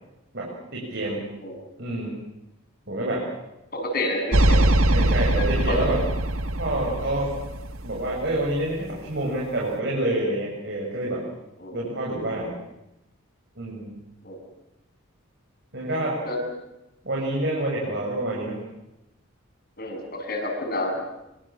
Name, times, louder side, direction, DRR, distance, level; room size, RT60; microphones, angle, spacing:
voice 1, 0.3-1.3 1.8-2.1 2.9-3.2 4.9-6.0 6.6-7.3 7.8-11.2 11.7-12.5 13.6-13.9 15.7-16.2 17.0-18.6, right 1 dB, 55° right, -3 dB, 7.1 m, -27 dB
voice 2, 3.7-4.6 5.4-5.9 11.6-11.9 14.2-14.4 16.2-16.4 19.8-21.0, left 1 dB, 45° left, 2 dB, 7.6 m, -29 dB
sound 1, 4.3-8.6, right 1 dB, 80° right, 1.9 m, -22 dB
26.5 x 25.0 x 7.6 m, 0.91 s
head